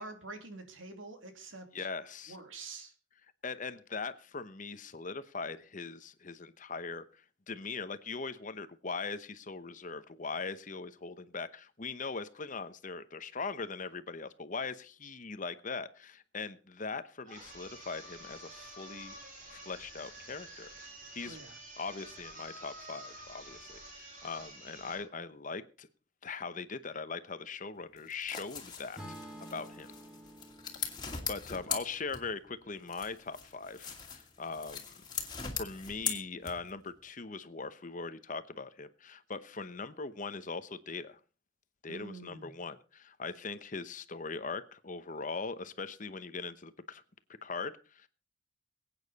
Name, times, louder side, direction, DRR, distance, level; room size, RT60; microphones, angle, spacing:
voice 1, 0.0-1.9 2.3-2.9 21.2-21.6 41.9-42.5, right 2 dB, 90° right, 2.8 m, -46 dB
voice 2, 1.7-2.4 3.4-19.2 19.5-20.7 21.1-21.4 21.8-25.9 26.2-29.2 29.5-29.9 30.7-30.8 31.3-35.0 35.6-41.2 41.8-47.0 47.4-48.1, left 4 dB, 40° left, 0.9 m, -40 dB
sound 1, 17.2-25.1, right 1 dB, 45° right, 6.1 m, -49 dB
sound 2, 28.0-32.5 32.9-36.9, left 6 dB, 20° left, 2.3 m, -40 dB
Acoustic guitar / Strum, 29.0-33.2, right 1 dB, 5° right, 2.1 m, -51 dB
22.5 x 8.9 x 4.1 m
head